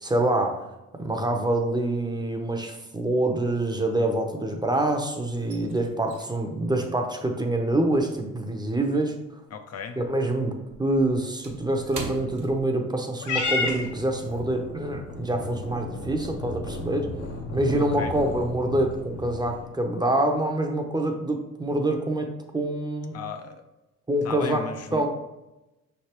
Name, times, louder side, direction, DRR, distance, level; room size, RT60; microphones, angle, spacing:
voice 1, 0.0-0.7 0.9-9.2 10.0-17.1 17.5-22.3 22.5-23.2 24.1-24.6 24.9-25.1, right 1 dB, 15° right, 3 dB, 0.6 m, -26 dB
sound 1, 1.9-2.5 2.7-4.7 5.0-9.7 10.0-13.3 13.6-13.8 14.3-14.5, right 3 dB, 75° right, 0.9 m, -44 dB
voice 2, 9.5-10.0 17.7-18.1 23.1-23.6 24.2-25.0, left 6 dB, 55° left, 6 dB, 0.5 m, -36 dB
Purr / Meow, 13.2-19.7, left 3 dB, 75° left, 1.6 m, -33 dB
5.3 x 3.3 x 2.9 m, 0.99 s
cardioid pair, 90°, 30 cm